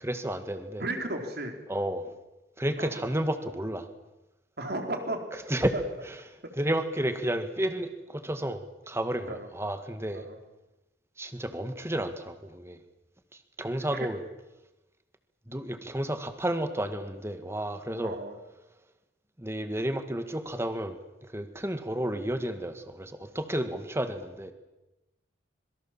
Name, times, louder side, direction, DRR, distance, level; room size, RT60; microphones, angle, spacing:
voice 1, 0.0-0.8 1.7-2.1 2.6-3.9 5.5-5.7 6.1-6.2 6.6-10.2 11.2-12.8 13.6-14.2 15.5-18.2 19.4-21.0 21.3-24.5, right 1 dB, 15° right, 8 dB, 1.9 m, -31 dB
voice 2, 0.8-1.6 2.8-3.0 4.6-5.4 6.4-6.5 9.3-9.5 10.1-10.4 13.9-14.1 18.0-18.3, right 1 dB, 55° right, 4 dB, 3.9 m, -34 dB
26.0 x 22.5 x 7.4 m, 0.99 s
head